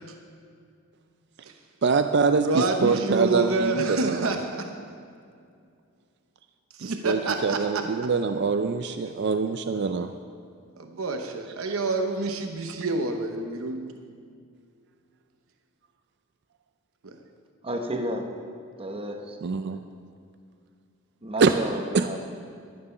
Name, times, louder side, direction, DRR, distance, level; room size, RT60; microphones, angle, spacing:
voice 1, 1.8-4.4 6.8-10.1 11.7-11.8 19.4-19.8 21.4-21.5 21.9-22.1, right 5 dB, 55° right, 8 dB, 0.4 m, -24 dB
voice 2, 2.4-4.7 6.7-7.8 10.8-13.9 17.0-17.2, right 3 dB, 80° right, 5 dB, 0.8 m, -28 dB
voice 3, 17.6-18.3 18.8-19.4 21.2-22.2, right 1 dB, 25° right, 4 dB, 1.0 m, -31 dB
12.5 x 9.3 x 5.5 m, 2.3 s
head